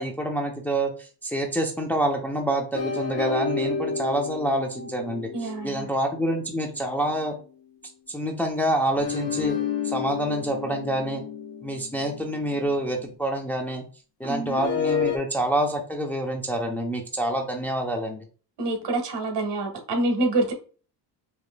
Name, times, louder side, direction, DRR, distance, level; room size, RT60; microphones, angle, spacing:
voice 1, 0.0-7.3 8.1-9.6 9.8-11.2 11.6-13.8 14.2-18.2, right 1 dB, 5° left, 0.6 m, -27 dB
sound 1, 2.7-7.3 9.0-13.1 14.5-15.2, left 6 dB, 35° left, 1.1 m, -31 dB
voice 2, 5.3-5.9 14.2-14.6 18.6-20.5, right 2 dB, 65° right, 1.5 m, -26 dB
5.1 x 3.0 x 2.2 m
cardioid pair, 120°, 43 cm